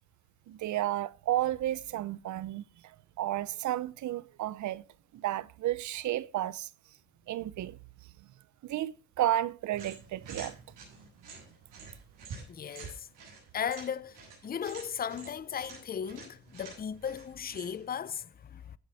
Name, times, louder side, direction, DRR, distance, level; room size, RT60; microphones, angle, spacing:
voice 1, 0.5-2.6 3.2-4.8 5.1-6.7 7.3-7.8 8.6-10.6, right 13 dB, 70° right, 0.7 m, -32 dB
sound 1, 9.7-17.9, right 5 dB, 90° right, 8.0 m, -49 dB
voice 2, 12.5-13.1 13.5-18.8, left 8 dB, 30° left, 0.5 m, -36 dB
16.0 x 7.4 x 4.1 m
cardioid pair, 85°, 31 cm